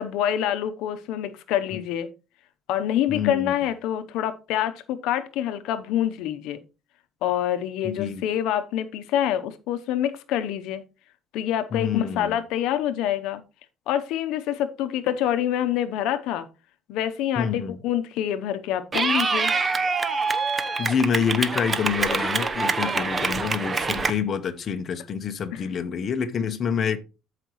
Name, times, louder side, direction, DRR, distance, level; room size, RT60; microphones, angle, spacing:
voice 1, 0.0-2.1 2.7-6.6 7.2-10.8 11.3-13.4 13.9-16.5 16.9-19.5 23.2-23.4 25.5-25.6, left 11 dB, 80° left, 0.8 m, -26 dB
voice 2, 3.1-3.5 7.8-8.2 11.7-12.4 17.4-17.8 20.8-27.0, left 7 dB, 40° left, 0.8 m, -27 dB
Clapping / Cheering, 18.9-24.1, right 4 dB, 20° right, 0.8 m, -25 dB
13.5 x 5.0 x 3.0 m
cardioid pair, 145°, 0 cm